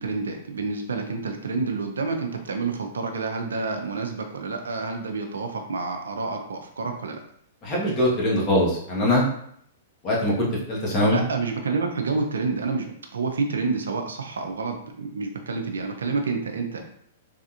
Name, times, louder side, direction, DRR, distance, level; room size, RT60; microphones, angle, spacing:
voice 1, 0.0-7.2 11.1-16.8, right 4 dB, 80° right, 4 dB, 0.5 m, -28 dB
voice 2, 7.6-9.2 10.0-11.2, left 1 dB, 30° left, -4 dB, 1.3 m, -22 dB
3.3 x 2.4 x 2.8 m, 0.67 s
hypercardioid pair, 120°, 0 cm